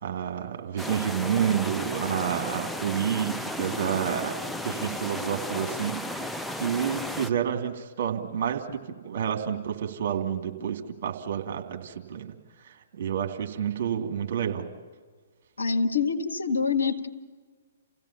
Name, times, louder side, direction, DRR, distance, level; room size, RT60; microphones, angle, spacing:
voice 1, 0.0-6.3 6.5-12.4 12.6-14.7, right 8 dB, 50° right, 4 dB, 2.7 m, -29 dB
sound 1, 0.8-7.3, left 1 dB, ahead, 0.5 m, -34 dB
voice 2, 15.6-17.1, left 5 dB, 80° left, 6 dB, 1.5 m, -25 dB
29.0 x 16.5 x 7.3 m, 1.5 s
figure-of-eight pair, 120°, 0 cm